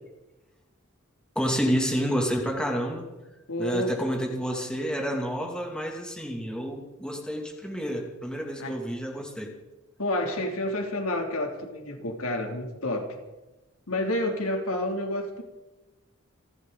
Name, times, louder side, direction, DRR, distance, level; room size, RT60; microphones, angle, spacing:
voice 1, 1.3-3.1 3.6-9.5, equal, 5° left, 1 dB, 2.6 m, -29 dB
voice 2, 3.5-3.9 8.6-8.8 10.0-13.1 13.9-15.4, left 1 dB, 90° left, 3 dB, 2.9 m, -29 dB
28.5 x 12.0 x 4.0 m, 1.1 s
head